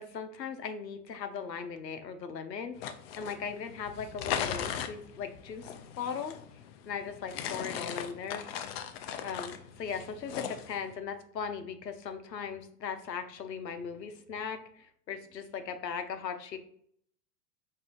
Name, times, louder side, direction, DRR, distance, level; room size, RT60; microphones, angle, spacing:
voice 1, 0.0-2.7 3.2-6.3 6.9-8.8 9.2-16.6, left 6 dB, 85° left, 7 dB, 0.7 m, -38 dB
sound 1, 2.7-10.9, left 9 dB, 40° left, 0.4 m, -39 dB
4.9 x 2.7 x 2.5 m, 0.65 s
figure-of-eight pair, 95°, 49 cm